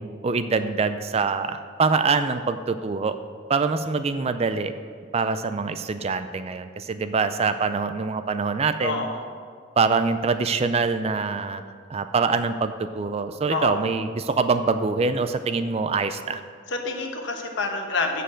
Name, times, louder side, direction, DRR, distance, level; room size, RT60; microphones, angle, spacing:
voice 1, 0.0-3.2 3.5-4.7 5.1-9.0 9.8-11.6 11.9-16.4, right 4 dB, 30° right, 10 dB, 0.4 m, -24 dB
voice 2, 8.8-9.3 13.5-13.9 16.7-18.2, left 3 dB, 65° left, 3 dB, 1.2 m, -28 dB
7.1 x 6.7 x 7.5 m, 2.1 s
head